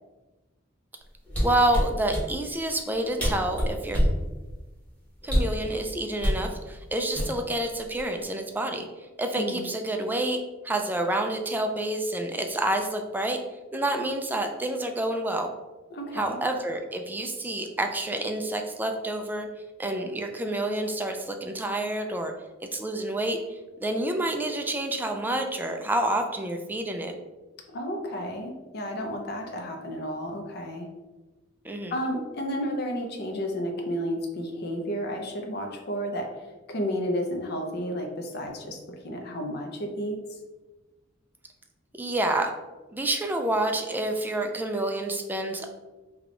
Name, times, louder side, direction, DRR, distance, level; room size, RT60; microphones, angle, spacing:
sound 1, 1.3-2.3 2.9-3.0 3.2-4.2 5.2-5.6 6.2-6.4 7.1-7.6 7.9-8.2, equal, 10° left, 1.1 m, -25 dB
voice 1, 1.4-4.0 5.2-13.4 13.7-15.5 16.1-19.5 19.8-22.3 22.6-27.2 31.6-31.9 42.0-42.5 42.9-45.7, right 1 dB, 10° right, 4 dB, 0.3 m, -28 dB
voice 2, 15.9-16.4 27.7-30.9 31.9-40.4, equal, 55° left, 3 dB, 0.6 m, -32 dB
3.4 x 2.3 x 3.7 m, 1.2 s
head